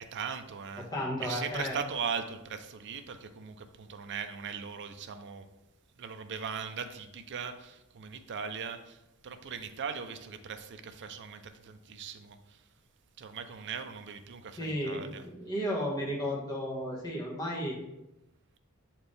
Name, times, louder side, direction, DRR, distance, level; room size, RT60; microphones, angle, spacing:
voice 1, 0.1-0.9 1.2-5.5 6.0-12.6 13.2-15.2, right 6 dB, 55° right, 8 dB, 0.5 m, -39 dB
voice 2, 0.9-1.7 14.6-17.8, equal, 20° left, -4 dB, 1.5 m, -33 dB
6.8 x 4.4 x 3.4 m, 0.94 s
head